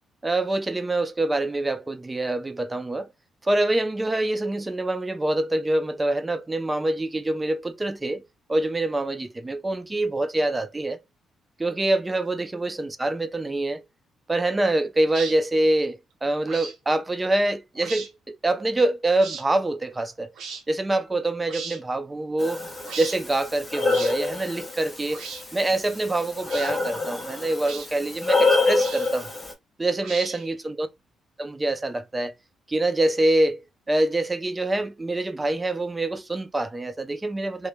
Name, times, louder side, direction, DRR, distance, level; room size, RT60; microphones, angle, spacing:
voice 1, 0.2-3.1 3.4-11.0 11.6-13.8 14.3-20.3 20.7-22.6 23.0-25.2 25.5-29.3 29.8-30.9 31.4-32.3 32.7-37.7, right 2 dB, 20° right, 0.3 m, -25 dB
sound 1, 15.1-15.4 16.4-16.8 17.8-18.1 19.2-19.4 20.4-20.6 21.5-21.8 22.8-23.2 23.9-24.2 25.1-25.4 26.4-26.7 27.6-27.9 28.7-29.2 30.0-30.5, right 5 dB, 75° right, 0.5 m, -37 dB
Breathing, 22.4-29.5, left 3 dB, 15° left, 0.7 m, -27 dB
2.1 x 2.1 x 2.9 m
cardioid pair, 90°, 0 cm